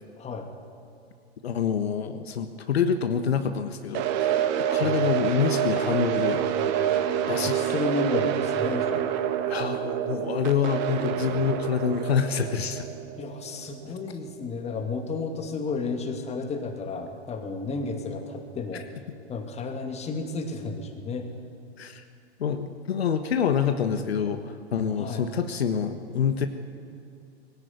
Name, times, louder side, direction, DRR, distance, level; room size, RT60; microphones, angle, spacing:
voice 1, 0.2-0.5 4.8-5.0 6.6-9.1 11.1-11.5 13.1-18.9 19.3-21.3 25.0-25.2, left 3 dB, 20° left, 5 dB, 2.5 m, -32 dB
voice 2, 1.4-4.4 4.7-6.5 7.3-7.8 9.5-12.9 21.8-22.0 22.4-26.5, left 7 dB, 70° left, 8 dB, 1.4 m, -26 dB
sound 1, 3.9-14.0, right 10 dB, 45° right, 2.2 m, -27 dB
20.5 x 17.0 x 9.5 m, 2.6 s
figure-of-eight pair, 105°, 32 cm